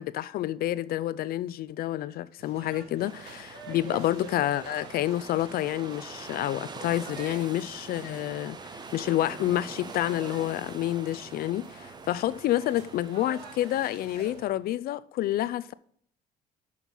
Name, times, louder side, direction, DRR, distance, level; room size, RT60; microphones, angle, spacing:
voice 1, 0.0-15.7, left 13 dB, 65° left, 0.4 m, -29 dB
sound 1, 2.4-14.5, right 5 dB, 75° right, 1.7 m, -48 dB
sound 2, 3.0-14.5, right 4 dB, 25° right, 0.7 m, -44 dB
6.3 x 5.7 x 5.3 m
cardioid pair, 110°, 17 cm